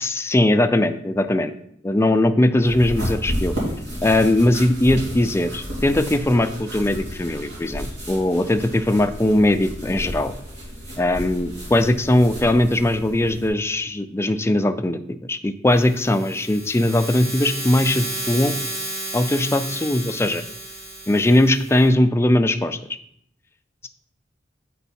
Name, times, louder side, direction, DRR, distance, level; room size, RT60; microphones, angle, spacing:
voice 1, 0.0-1.5 1.8-3.5 4.0-10.3 11.0-18.5 19.1-20.4 21.1-22.8, left 1 dB, 15° left, 8 dB, 0.4 m, -20 dB
sound 1, 2.6-13.5, equal, 70° right, 2.9 m, -32 dB
sound 2, 15.7-21.9, right 1 dB, 85° right, 3.4 m, -32 dB
7.9 x 4.6 x 4.3 m, 0.69 s
head